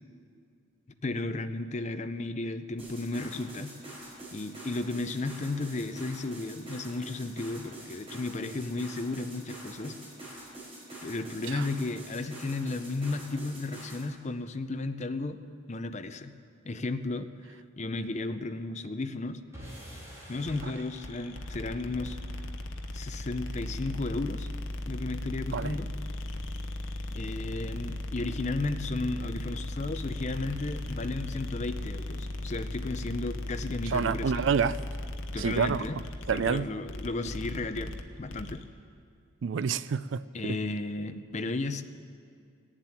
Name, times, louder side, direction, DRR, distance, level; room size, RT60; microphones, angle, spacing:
voice 1, 1.0-3.7 4.3-10.0 11.0-15.4 15.7-16.3 16.6-17.3 17.8-19.4 20.3-22.2 22.9-24.5 24.9-25.9 27.1-34.4 35.3-36.0 36.3-38.6 40.3-41.8, left 2 dB, 35° left, 10 dB, 0.6 m, -34 dB
sound 1, 2.8-14.1, right 1 dB, 30° right, 4.6 m, -45 dB
sound 2, 19.5-25.9, equal, 15° right, 3.7 m, -51 dB
sound 3, 20.5-38.6, left 1 dB, 75° left, 0.9 m, -37 dB
voice 2, 33.9-34.8 35.4-35.8 36.3-36.6 39.4-40.2, right 6 dB, 65° right, 16 dB, 0.4 m, -28 dB
18.0 x 7.5 x 9.8 m, 2.3 s
head